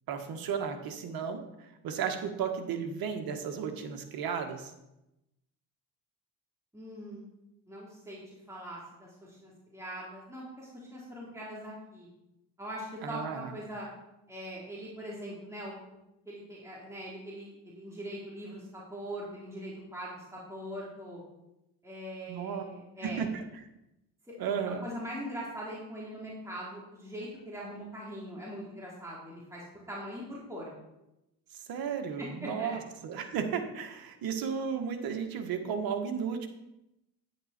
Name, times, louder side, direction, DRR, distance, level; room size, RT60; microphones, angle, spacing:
voice 1, 0.1-4.7 13.0-13.5 22.3-22.6 23.0-23.4 24.4-24.8 31.5-36.5, right 7 dB, 65° right, 5 dB, 1.8 m, -34 dB
voice 2, 6.7-7.2 7.7-12.1 12.6-13.9 14.3-16.0 16.3-21.2 21.8-23.2 24.4-30.7 32.2-32.8, equal, 5° right, -6 dB, 3.8 m, -42 dB
10.5 x 9.9 x 4.5 m, 0.91 s
cardioid pair, 90°, 38 cm